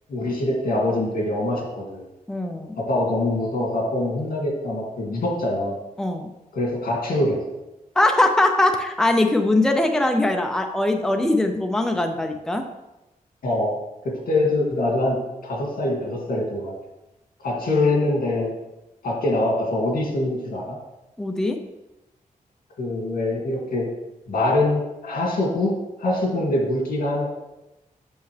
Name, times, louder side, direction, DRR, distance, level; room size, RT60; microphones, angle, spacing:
voice 1, 0.1-2.1 2.8-5.8 6.5-7.4 13.4-13.7 14.0-15.2 15.4-16.7 17.4-18.5 19.0-20.8 22.8-23.8 24.3-25.7 26.0-27.3, left 2 dB, 80° left, -1 dB, 2.3 m, -24 dB
voice 2, 2.3-2.7 6.0-6.3 8.0-12.6 21.2-21.6, left 2 dB, 5° left, 5 dB, 0.6 m, -21 dB
8.0 x 6.8 x 3.3 m, 0.97 s
wide cardioid pair, 135°, 15 cm